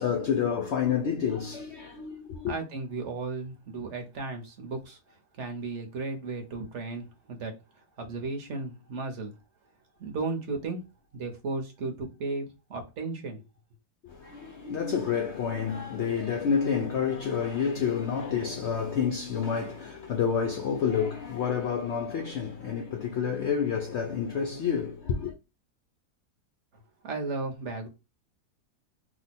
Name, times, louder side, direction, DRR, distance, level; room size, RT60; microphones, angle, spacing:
voice 1, 0.0-2.5 14.0-25.3, left 7 dB, 85° left, 0.6 m, -29 dB
voice 2, 2.5-9.3 10.0-10.8 11.1-13.4 27.0-27.9, right 3 dB, 55° right, 0.9 m, -35 dB
2.9 x 2.1 x 4.0 m
omnidirectional pair, 1.8 m